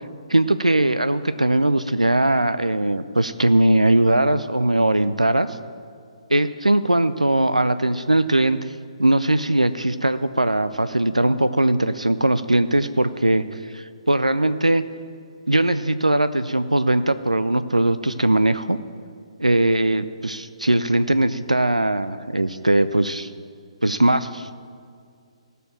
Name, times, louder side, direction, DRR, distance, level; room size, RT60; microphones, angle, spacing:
voice 1, 0.3-5.6 6.3-8.7 9.0-14.8 15.5-18.8 19.4-23.3 23.8-24.6, right 1 dB, 90° right, 12 dB, 0.5 m, -20 dB
16.5 x 6.8 x 7.3 m, 2.2 s
figure-of-eight pair, 135°, 4 cm